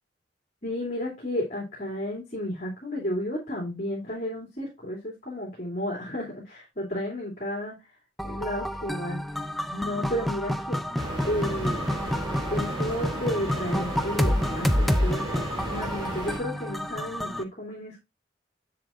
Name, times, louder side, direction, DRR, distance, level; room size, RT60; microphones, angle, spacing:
voice 1, 0.6-8.0 8.2-10.8 11.3-11.8 12.5-18.0, left 1 dB, 40° left, -2 dB, 2.7 m, -32 dB
sound 1, 8.2-17.4, equal, ahead, 0.5 m, -29 dB
sound 2, 11.0-16.4, right 1 dB, 25° right, 2.8 m, -34 dB
7.5 x 7.4 x 2.5 m, 0.23 s
head